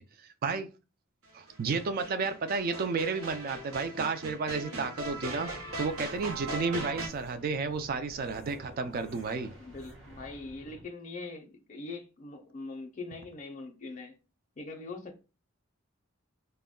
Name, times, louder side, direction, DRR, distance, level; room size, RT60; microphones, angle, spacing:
voice 1, 0.2-0.7 1.3-5.5 5.8-9.5, right 4 dB, 45° right, 0.3 m, -32 dB
sound 1, 1.5-7.1, right 2 dB, 80° right, 0.7 m, -40 dB
sound 2, 5.0-10.8, equal, 60° right, 1.0 m, -51 dB
voice 2, 9.6-14.1 14.6-15.2, left 3 dB, 35° left, 0.4 m, -42 dB
2.2 x 2.1 x 3.6 m
head